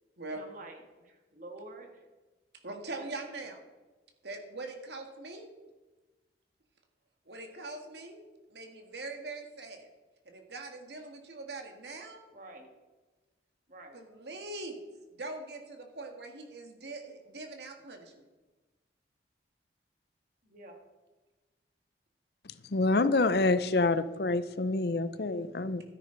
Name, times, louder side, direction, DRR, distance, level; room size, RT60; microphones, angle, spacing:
voice 1, 0.3-2.0 2.9-3.3 12.3-12.7 13.7-14.0 20.4-20.8, right 2 dB, 45° right, 1.9 m, -48 dB
voice 2, 2.6-3.6 4.2-5.5 7.3-8.2 8.5-9.9 10.3-12.2 13.9-14.8 15.1-18.1, right 2 dB, 65° right, 1.8 m, -42 dB
voice 3, 22.7-25.8, left 3 dB, 60° left, 0.6 m, -27 dB
13.0 x 10.0 x 4.0 m
head